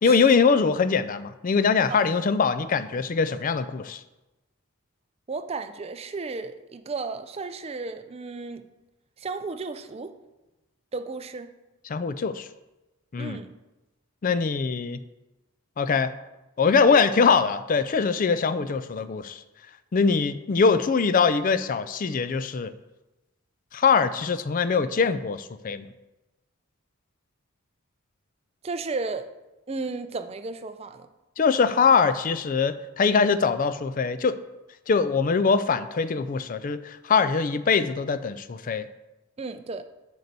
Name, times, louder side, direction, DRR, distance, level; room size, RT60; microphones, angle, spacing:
voice 1, 0.0-4.0 11.9-12.5 13.1-13.4 14.2-15.0 15.8-16.1 16.6-19.4 19.9-22.7 23.7-25.9 31.4-34.4 34.9-38.9, left 5 dB, 40° left, 13 dB, 0.4 m, -22 dB
voice 2, 5.3-8.7 9.2-10.2 10.9-11.5 13.2-13.5 28.6-29.3 29.7-31.1 39.4-39.8, right 3 dB, 30° right, 9 dB, 0.4 m, -34 dB
6.6 x 4.6 x 6.7 m, 1.0 s
head